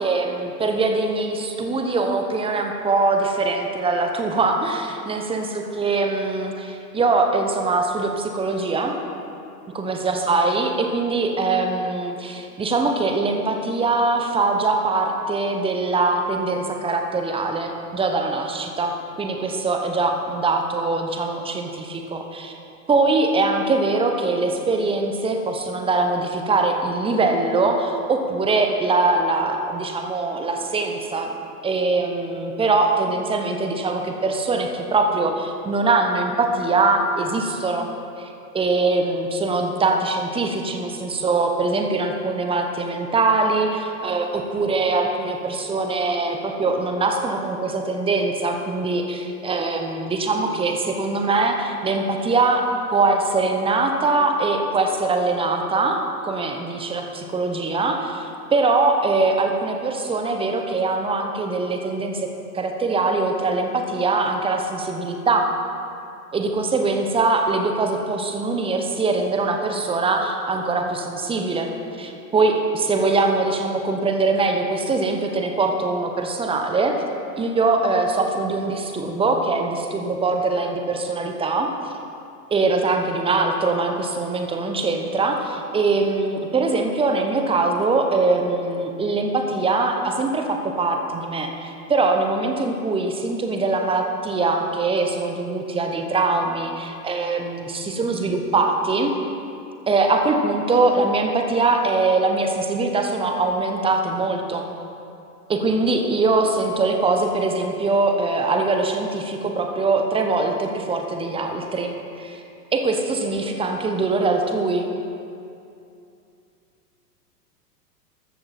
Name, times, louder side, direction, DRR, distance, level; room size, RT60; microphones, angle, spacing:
voice 1, 0.0-9.0 9.7-22.6 22.9-31.4 31.6-37.9 38.2-56.0 56.2-65.5 66.3-76.9 77.4-81.9 82.5-99.1 99.9-104.7 105.5-111.9 112.2-112.4 112.7-114.9, right 3 dB, 10° right, 4 dB, 1.1 m, -22 dB
14.0 x 12.5 x 4.4 m, 2.6 s
figure-of-eight pair, 105°, 48 cm